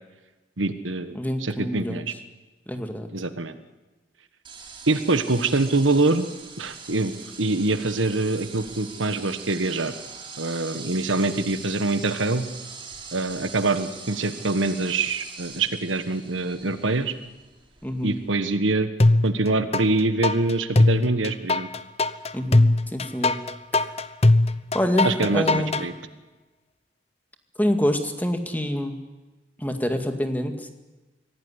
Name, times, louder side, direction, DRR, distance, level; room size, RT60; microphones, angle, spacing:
voice 1, 0.6-2.0 3.1-3.5 4.9-6.3 6.6-7.1 7.4-9.9 10.4-12.5 13.1-17.1 18.0-18.9 19.2-21.7 25.0-25.9, right 2 dB, 85° right, 10 dB, 1.5 m, -24 dB
voice 2, 1.1-2.1 2.7-3.1 17.8-18.2 22.3-23.4 23.7-23.9 24.7-25.8 27.6-29.0 29.6-30.7, equal, 10° left, 6 dB, 2.1 m, -26 dB
sound 1, 4.4-18.3, right 5 dB, 25° right, 3.3 m, -42 dB
sound 2, 19.0-19.8 20.2-25.9, left 2 dB, 35° left, 0.8 m, -20 dB
24.0 x 17.5 x 9.9 m, 1.2 s
head